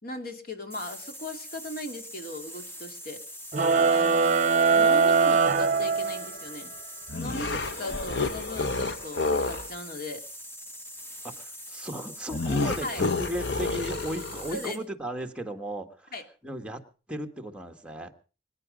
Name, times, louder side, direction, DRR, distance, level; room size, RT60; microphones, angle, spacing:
voice 1, 0.0-3.2 3.9-6.7 7.1-10.2 12.8-13.0 14.5-14.8 16.1-16.2, left 1 dB, 55° left, 5 dB, 2.6 m, -38 dB
sound 1, 0.7-14.8, equal, 15° left, 1.7 m, -43 dB
sound 2, 3.5-6.5, right 5 dB, 45° right, 1.0 m, -22 dB
sound 3, 7.1-9.7 12.3-14.6, left 3 dB, 70° left, 1.1 m, -29 dB
voice 2, 11.2-16.1 16.4-16.8 17.1-18.1, equal, 5° right, 4 dB, 1.6 m, -36 dB
24.5 x 10.0 x 5.2 m, 0.38 s
head